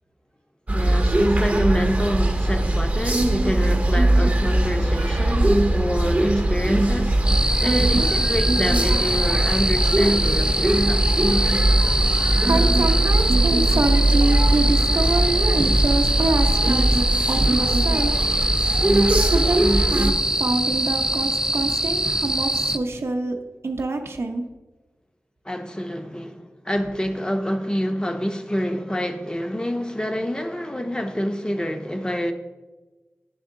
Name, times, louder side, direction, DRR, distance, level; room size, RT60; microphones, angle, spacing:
voice 1, 0.7-7.2 7.6-11.1 25.4-32.3, equal, 15° left, 0.7 m, -27 dB
sound 1, 0.7-20.1, right 1 dB, 30° right, 0.8 m, -20 dB
sound 2, 7.3-17.0, left 2 dB, 60° left, 0.7 m, -36 dB
sound 3, 7.3-22.8, right 1 dB, 15° right, 0.4 m, -24 dB
voice 2, 12.4-17.0 17.3-23.4 23.6-24.4, right 2 dB, 60° right, 0.6 m, -26 dB
10.0 x 3.6 x 3.6 m
cardioid pair, 55°, 5 cm